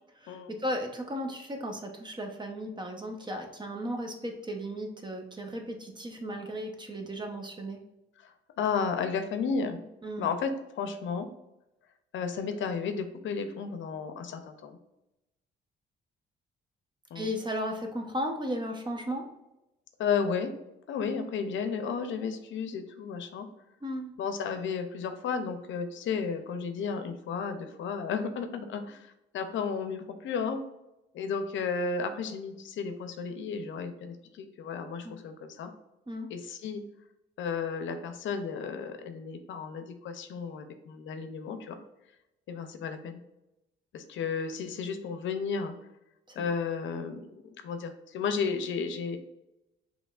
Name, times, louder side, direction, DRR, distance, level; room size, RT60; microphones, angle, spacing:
voice 1, 0.2-7.8 10.0-10.3 17.1-19.3 23.8-24.1 35.0-35.1 36.1-36.3 46.3-46.4, equal, 20° right, 3 dB, 0.8 m, -35 dB
voice 2, 8.6-9.8 10.2-11.3 12.1-14.8 17.1-17.3 20.0-20.5 20.9-23.5 24.2-30.6 31.1-35.7 36.3-36.8 37.4-41.8 42.5-43.2 43.9-45.7 46.4-49.2, left 5 dB, 70° left, 7 dB, 0.6 m, -33 dB
5.1 x 3.1 x 2.4 m, 0.92 s
cardioid pair, 90°, 20 cm